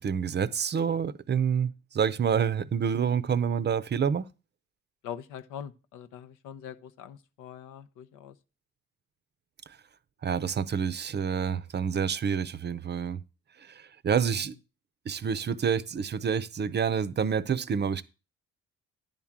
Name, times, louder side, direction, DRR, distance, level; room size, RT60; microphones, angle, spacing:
voice 1, 0.0-4.2 10.2-13.2 14.0-14.5 15.1-18.0, right 7 dB, 35° right, 0.5 m, -28 dB
voice 2, 5.0-8.4 14.3-14.5, left 9 dB, 90° left, 0.7 m, -43 dB
10.5 x 3.7 x 7.1 m
cardioid pair, 90°, 30 cm